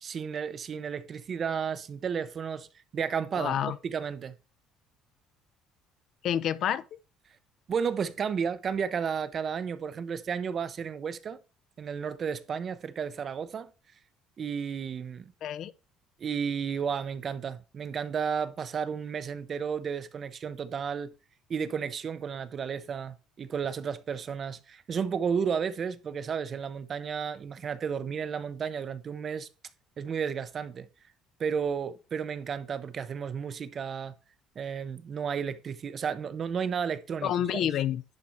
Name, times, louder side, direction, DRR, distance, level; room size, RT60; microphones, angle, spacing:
voice 1, 0.0-2.7 2.9-4.3 7.7-11.4 11.8-13.7 14.4-15.3 16.2-21.1 21.5-29.5 30.0-30.9 31.4-34.1 34.6-37.7, right 6 dB, 30° right, 0.5 m, -33 dB
voice 2, 3.4-3.8 6.2-6.8 15.4-15.7 37.2-38.2, left 10 dB, 45° left, 0.4 m, -28 dB
10.5 x 4.1 x 4.5 m
cardioid pair, 175°, 0 cm